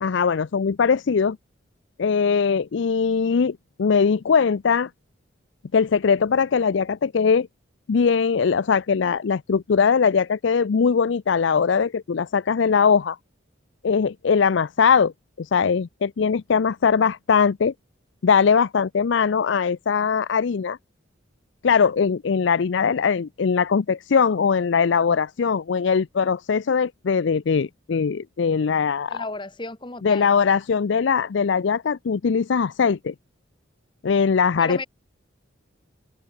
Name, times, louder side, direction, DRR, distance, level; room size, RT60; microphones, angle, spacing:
voice 1, 0.0-1.4 2.0-4.9 5.7-7.5 7.9-13.2 13.8-15.1 15.4-17.7 18.2-20.8 21.6-29.2 30.0-33.1 34.0-34.8, left 6 dB, 70° left, 0.5 m, -21 dB
voice 2, 29.1-30.3 34.6-34.9, left 2 dB, 25° left, 1.6 m, -33 dB
open air
head